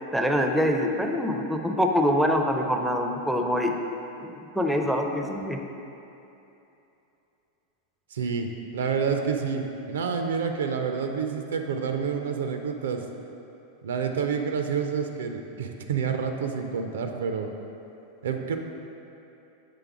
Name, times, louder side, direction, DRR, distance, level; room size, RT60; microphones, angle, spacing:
voice 1, 0.1-3.7 4.2-5.6, equal, ahead, 2 dB, 0.4 m, -25 dB
voice 2, 8.1-8.5 8.7-13.0 13.8-17.5 18.2-18.6, right 6 dB, 65° right, 5 dB, 0.4 m, -28 dB
6.8 x 3.3 x 4.7 m, 2.9 s
figure-of-eight pair, 90°, 0 cm